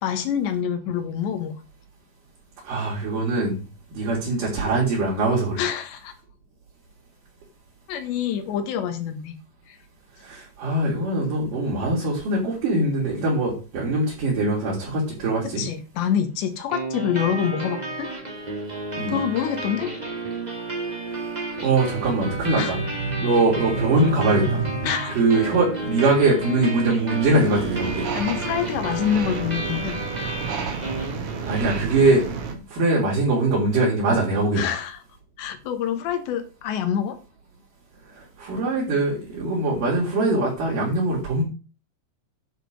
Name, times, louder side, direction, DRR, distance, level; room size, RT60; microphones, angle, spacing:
voice 1, 0.0-1.6 5.6-6.1 7.9-9.3 9.7-9.8 15.6-18.1 19.1-19.9 22.6-22.8 24.8-25.2 28.1-30.0 34.6-35.0 35.4-37.2, left 9 dB, 80° left, 7 dB, 3.6 m, -26 dB
voice 2, 2.6-3.6 3.9-5.6 10.2-15.6 19.0-19.2 21.6-22.8 23.2-24.6 25.1-28.1 31.5-32.2 32.7-34.7 38.1-41.4, right 2 dB, 50° right, -4 dB, 4.8 m, -22 dB
sound 1, 16.7-31.7, right 2 dB, 20° right, 1.1 m, -32 dB
sound 2, 21.8-27.4 27.9-29.8, right 3 dB, 70° right, 3.8 m, -32 dB
sound 3, 27.3-32.5, right 6 dB, 85° right, 1.2 m, -31 dB
10.0 x 7.4 x 5.2 m, 0.33 s
omnidirectional pair, 5.1 m